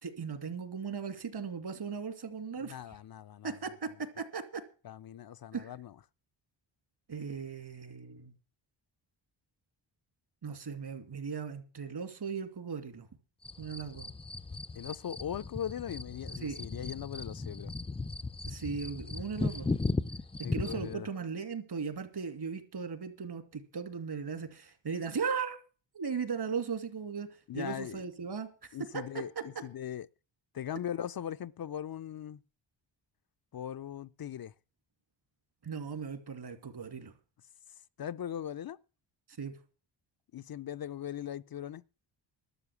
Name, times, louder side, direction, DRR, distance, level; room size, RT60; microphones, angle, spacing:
voice 1, 0.0-2.8 3.4-3.9 4.2-4.6 5.5-5.7 7.1-8.3 10.4-13.1 13.6-14.1 16.4-16.6 18.5-19.7 20.5-25.6 25.9-27.3 27.5-28.5 28.9-29.4 35.6-37.1 39.4-39.5, right 6 dB, 55° right, 2.7 m, -37 dB
voice 2, 2.6-3.6 4.8-5.9 14.8-17.7 20.4-21.1 27.5-28.0 28.7-30.1 30.5-32.4 33.5-34.5 38.0-38.8 40.3-41.8, left 10 dB, 50° left, 0.6 m, -39 dB
sound 1, 13.4-20.9, left 3 dB, 15° left, 0.5 m, -37 dB
12.5 x 6.7 x 8.2 m
cardioid pair, 75°, 46 cm